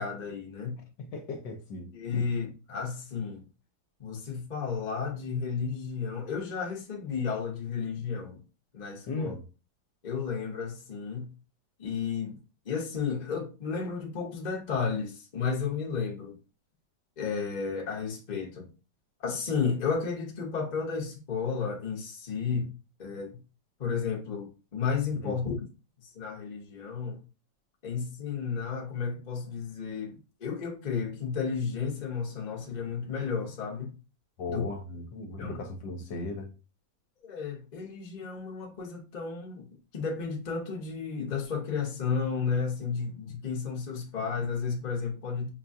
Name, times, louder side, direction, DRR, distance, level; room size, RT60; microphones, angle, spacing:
voice 1, 0.0-0.8 1.9-3.4 4.0-8.4 8.7-9.4 10.0-11.3 11.8-12.4 12.6-16.4 17.2-18.7 19.2-22.7 23.0-23.4 23.8-25.5 26.0-27.2 27.8-33.9 34.5-34.7 35.4-35.5 37.2-39.7 39.9-45.5, left 5 dB, 35° left, 0.8 m, -32 dB
voice 2, 1.0-2.3 9.1-9.4 25.2-25.4 34.4-36.5, left 2 dB, 75° left, 1.3 m, -37 dB
5.4 x 2.3 x 2.6 m
omnidirectional pair, 2.1 m